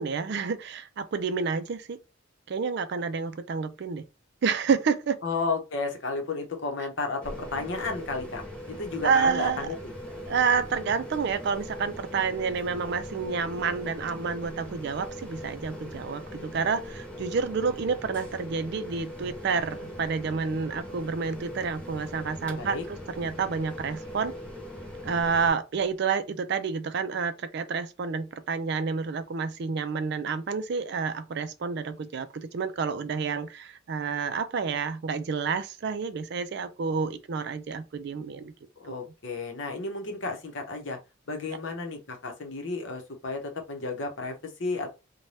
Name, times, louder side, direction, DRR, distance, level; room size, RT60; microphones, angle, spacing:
voice 1, 0.0-2.0 2.5-4.1 4.4-5.2 9.0-9.7 10.2-24.3 25.0-38.5, right 5 dB, 55° right, 0.4 m, -29 dB
voice 2, 5.2-8.4 8.7-9.9 22.5-22.8 38.8-41.0 41.3-45.0, left 3 dB, 60° left, 0.8 m, -33 dB
sound 1, 7.2-25.5, equal, 5° left, 1.0 m, -40 dB
2.6 x 2.2 x 3.2 m
head